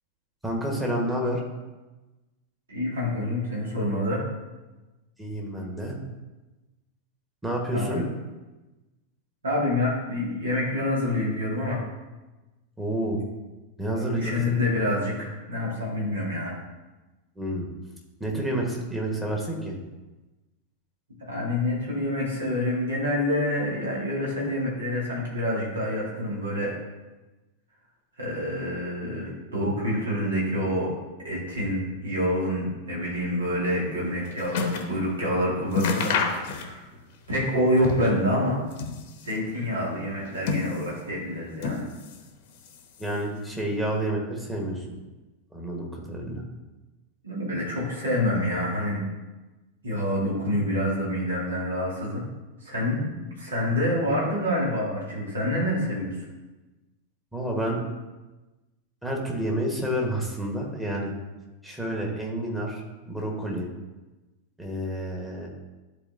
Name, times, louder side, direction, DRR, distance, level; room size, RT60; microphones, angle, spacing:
voice 1, 0.4-1.4 5.2-6.0 7.4-8.0 12.8-13.2 13.8-14.3 17.4-17.7 18.2-19.7 43.0-44.8 45.5-46.4 57.3-57.8 59.0-61.1 61.6-63.7 64.6-65.5, right 1 dB, 5° right, -2 dB, 1.5 m, -29 dB
voice 2, 2.7-4.2 7.7-8.0 9.4-11.8 13.9-16.6 21.2-26.7 28.2-30.9 31.2-36.8 37.3-38.6 39.2-41.8 47.2-49.0 49.8-52.3 52.6-56.1, left 1 dB, 70° right, -4 dB, 2.2 m, -27 dB
sound 1, 33.8-35.0 35.3-35.4 35.7-37.0 37.3-38.2 38.6-39.5 40.1-41.1 41.6-42.3 42.6-43.3 44.0-44.1, left 5 dB, 50° left, 0.9 m, -30 dB
10.5 x 4.2 x 2.8 m, 1.1 s
figure-of-eight pair, 90°, 0 cm